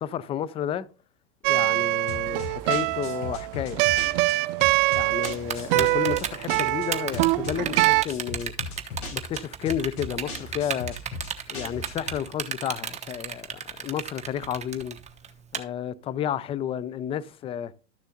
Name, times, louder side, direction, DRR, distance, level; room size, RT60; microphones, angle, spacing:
voice 1, 0.0-0.9 1.5-3.9 4.8-8.5 9.1-10.9 11.5-15.0 15.5-17.7, left 9 dB, 15° left, 0.3 m, -31 dB
sound 1, 1.4-8.0, right 20 dB, 55° right, 0.5 m, -24 dB
sound 2, 2.1-12.2, left 3 dB, 55° left, 4.5 m, -38 dB
Typing, 5.2-15.6, right 7 dB, 20° right, 1.0 m, -32 dB
13.0 x 6.8 x 2.8 m
hypercardioid pair, 95°, 35 cm